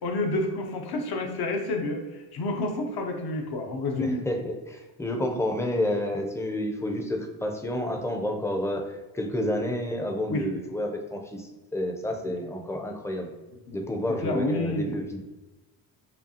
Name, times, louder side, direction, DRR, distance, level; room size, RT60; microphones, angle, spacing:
voice 1, 0.0-4.2 10.3-10.5 13.7-13.8 14.2-15.0, left 2 dB, 65° left, 3 dB, 0.7 m, -29 dB
voice 2, 4.0-13.3 13.7-15.2, left 1 dB, 5° left, 2 dB, 0.4 m, -30 dB
5.2 x 2.3 x 2.7 m, 1.1 s
cardioid pair, 105°, 41 cm